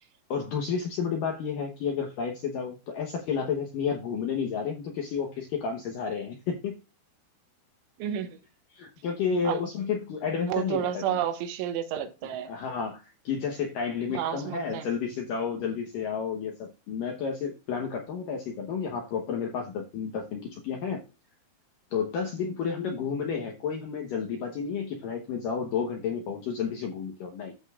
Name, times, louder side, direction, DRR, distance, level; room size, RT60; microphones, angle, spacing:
voice 1, 0.3-6.8 8.7-11.2 12.5-21.0 21.9-27.6, left 6 dB, 75° left, 1.9 m, -31 dB
voice 2, 10.5-12.5 14.1-14.9, right 10 dB, 85° right, 3.5 m, -30 dB
14.0 x 5.2 x 2.4 m
omnidirectional pair, 5.4 m